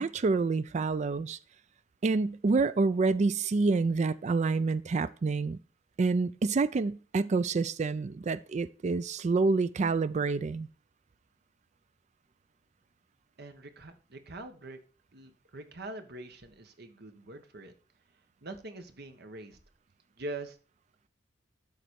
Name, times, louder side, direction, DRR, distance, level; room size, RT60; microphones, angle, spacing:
voice 1, 0.0-1.4 2.0-5.6 6.0-10.7, right 4 dB, 40° right, 0.4 m, -28 dB
voice 2, 13.4-14.8 15.1-17.7 18.4-19.6 20.2-20.5, right 2 dB, 60° right, 1.3 m, -43 dB
12.0 x 4.0 x 4.6 m
head